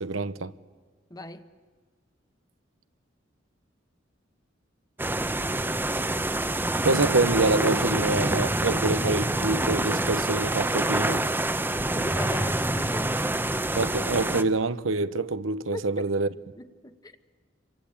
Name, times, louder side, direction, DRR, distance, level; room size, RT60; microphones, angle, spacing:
voice 1, 0.0-0.5 6.8-11.2 13.7-16.3, right 3 dB, 90° right, 1.1 m, -26 dB
voice 2, 1.1-1.4 11.9-13.3 15.7-15.8 16.6-17.2, left 1 dB, 20° left, 1.2 m, -38 dB
sound 1, 5.0-14.4, right 1 dB, 10° right, 0.9 m, -26 dB
28.0 x 24.0 x 8.8 m
head